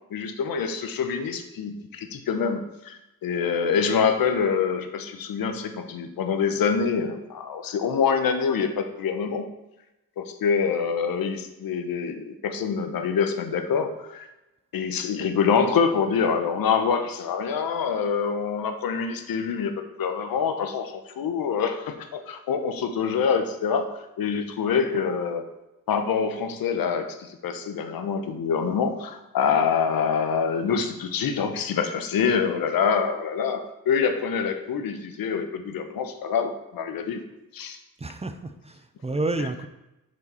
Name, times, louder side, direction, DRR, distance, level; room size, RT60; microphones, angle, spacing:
voice 1, 0.1-9.5 10.2-14.3 14.7-25.4 25.9-37.2 37.5-37.8, left 6 dB, 80° left, 8 dB, 0.8 m, -26 dB
voice 2, 38.0-39.7, right 2 dB, 20° right, 8 dB, 0.5 m, -30 dB
6.6 x 4.9 x 4.2 m, 0.95 s
cardioid pair, 70°, 34 cm